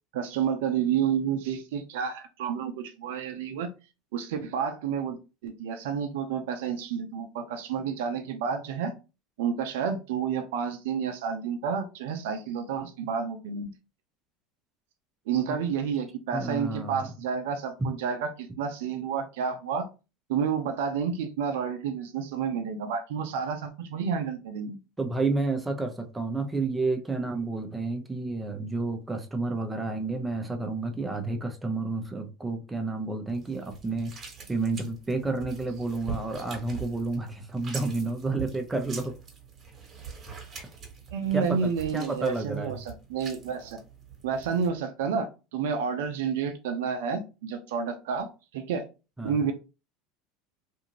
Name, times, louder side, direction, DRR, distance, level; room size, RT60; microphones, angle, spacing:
voice 1, 0.1-3.7 4.1-8.9 9.4-13.7 15.3-19.9 20.3-24.8 41.1-43.8 44.2-45.3 45.5-48.8 49.2-49.5, right 7 dB, 75° right, 0.5 m, -30 dB
voice 2, 16.3-17.1 17.8-17.9 25.0-34.1 34.5-39.2 41.3-42.8 49.2-49.4, right 3 dB, 15° right, 0.7 m, -30 dB
sound 1, 33.3-44.7, right 5 dB, 35° right, 1.3 m, -43 dB
2.6 x 2.5 x 2.9 m
hypercardioid pair, 95°, 0 cm